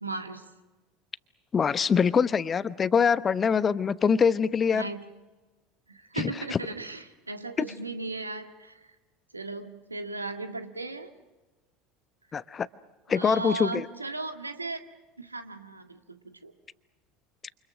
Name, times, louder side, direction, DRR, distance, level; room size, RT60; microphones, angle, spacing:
voice 1, 0.0-0.5 4.7-5.1 5.9-8.9 9.3-11.1 13.1-14.9 15.2-16.5, right 3 dB, 85° right, 7 dB, 1.8 m, -36 dB
voice 2, 1.5-4.9 6.2-6.3 12.3-12.7 13.1-13.9, left 6 dB, 25° left, 16 dB, 1.0 m, -24 dB
29.0 x 28.5 x 6.2 m, 1.2 s
figure-of-eight pair, 70°, 0 cm